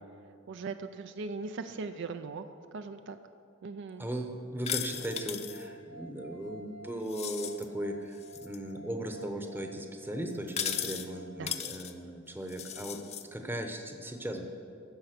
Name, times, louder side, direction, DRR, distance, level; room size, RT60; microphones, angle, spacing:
voice 1, 0.5-3.2 3.6-4.1 11.4-11.5, right 4 dB, 60° right, 10 dB, 0.4 m, -39 dB
voice 2, 4.0-13.0 13.3-14.5, right 1 dB, 10° right, 4 dB, 0.8 m, -37 dB
sound 1, 4.6-5.6 7.1-7.6 8.2-8.6 10.5-11.1 11.5-11.9 12.5-13.2, left 9 dB, 30° left, 0.5 m, -36 dB
sound 2, 4.8-12.0, right 1 dB, 65° left, 0.8 m, -52 dB
10.0 x 6.8 x 6.6 m, 2.5 s
head